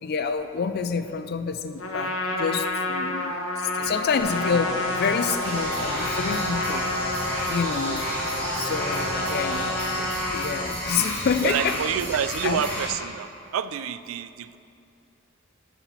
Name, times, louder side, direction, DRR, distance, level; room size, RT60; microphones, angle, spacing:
voice 1, 0.0-3.3 3.6-6.9 7.5-8.0 8.5-9.7 10.3-11.8 12.4-12.6, left 6 dB, 50° left, 10 dB, 0.4 m, -27 dB
Trumpet, 1.8-10.8, left 2 dB, 65° left, 0.9 m, -30 dB
sound 1, 4.2-9.7, right 1 dB, 90° right, 1.6 m, -32 dB
sound 2, 5.4-12.9, equal, 10° left, 1.7 m, -32 dB
voice 2, 11.4-14.6, right 8 dB, 70° right, 14 dB, 0.3 m, -29 dB
10.0 x 4.2 x 5.6 m, 2.6 s
head